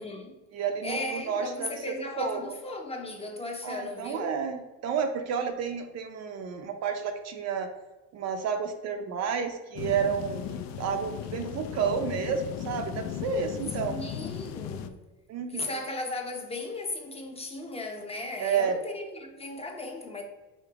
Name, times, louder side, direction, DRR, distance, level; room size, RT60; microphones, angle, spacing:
voice 1, 0.0-0.4 0.8-4.4 13.9-15.1 15.5-20.2, left 2 dB, 15° left, 0.7 m, -36 dB
voice 2, 0.5-1.7 2.2-2.4 3.6-7.7 8.1-14.0 15.3-15.7 18.4-18.8, right 6 dB, 50° right, 0.6 m, -31 dB
sound 1, 9.8-14.9, left 9 dB, 50° left, 0.5 m, -36 dB
5.1 x 2.1 x 4.6 m
supercardioid pair, 115°, 35 cm